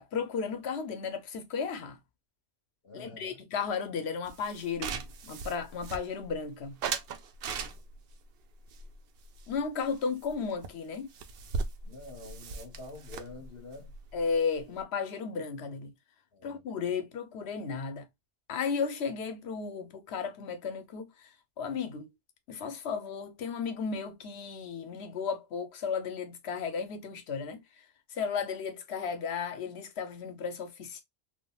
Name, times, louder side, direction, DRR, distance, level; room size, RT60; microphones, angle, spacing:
voice 1, 0.0-2.0 2.9-6.8 9.5-11.1 14.1-15.9 16.4-18.1 18.5-21.3 21.6-22.1 22.5-27.6 28.1-31.0, left 5 dB, 85° left, 1.0 m, -34 dB
voice 2, 2.8-3.4 11.8-13.9 16.3-16.7, left 2 dB, 70° left, 1.3 m, -47 dB
sound 1, 4.3-6.4 6.8-8.1 8.7-9.9 10.2-10.3 10.6-10.7 10.9-14.8, right 5 dB, 75° right, 0.8 m, -38 dB
3.4 x 2.4 x 2.2 m
omnidirectional pair, 1.1 m